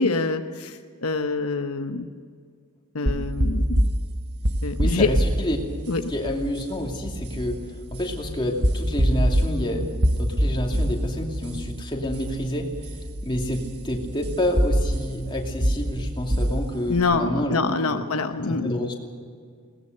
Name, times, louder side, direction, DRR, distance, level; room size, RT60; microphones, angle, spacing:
voice 1, 0.0-2.1 2.9-3.9 4.6-5.1 5.9-6.1 16.9-18.8, left 3 dB, 80° left, 7 dB, 1.0 m, -25 dB
sound 1, 3.1-17.0, equal, 50° right, 1.6 m, -26 dB
voice 2, 4.8-5.6 6.1-7.6 7.9-9.9 10.2-12.7 13.2-18.0 18.5-19.1, left 1 dB, 20° left, 0 dB, 2.7 m, -28 dB
21.5 x 19.0 x 6.7 m, 2.1 s
head